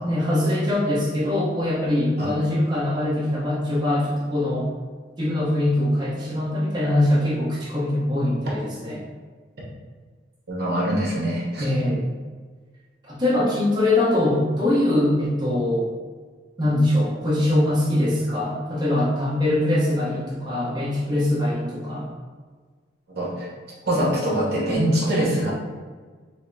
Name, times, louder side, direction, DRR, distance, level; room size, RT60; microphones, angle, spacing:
voice 1, 0.0-4.7 5.2-9.1 11.6-12.1 13.1-15.9 16.6-22.1, left 1 dB, 25° right, -9 dB, 0.9 m, -22 dB
voice 2, 10.5-11.6 23.1-23.5 23.9-25.5, right 1 dB, 60° right, -5 dB, 1.0 m, -23 dB
5.2 x 2.0 x 2.7 m, 1.5 s
head